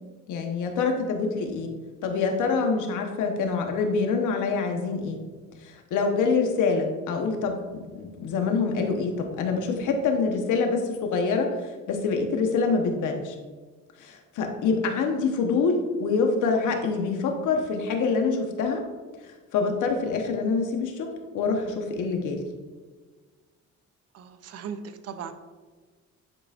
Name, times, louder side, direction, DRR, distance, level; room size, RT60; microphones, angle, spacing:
voice 1, 0.3-1.7 2.0-5.2 5.6-13.3 14.0-18.8 19.2-21.1 21.3-22.4, left 4 dB, 80° left, 4 dB, 1.1 m, -26 dB
voice 2, 24.1-25.3, right 7 dB, 55° right, 9 dB, 0.6 m, -37 dB
9.9 x 4.9 x 2.5 m, 1.4 s
cardioid pair, 90°, 30 cm